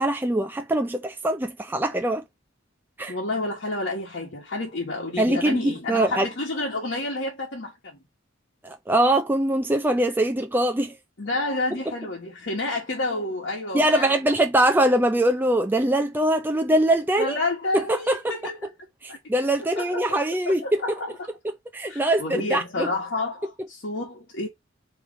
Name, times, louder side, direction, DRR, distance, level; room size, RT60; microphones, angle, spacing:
voice 1, 0.0-2.2 3.0-3.2 5.2-6.3 8.6-10.9 13.7-17.4 17.7-18.3 19.0-20.8 21.7-22.9, right 1 dB, 10° right, 0.4 m, -22 dB
voice 2, 3.1-8.0 11.2-14.4 17.2-18.7 19.1-19.2 19.6-21.2 21.9-24.5, left 2 dB, 60° left, 1.2 m, -30 dB
3.6 x 3.1 x 4.8 m
head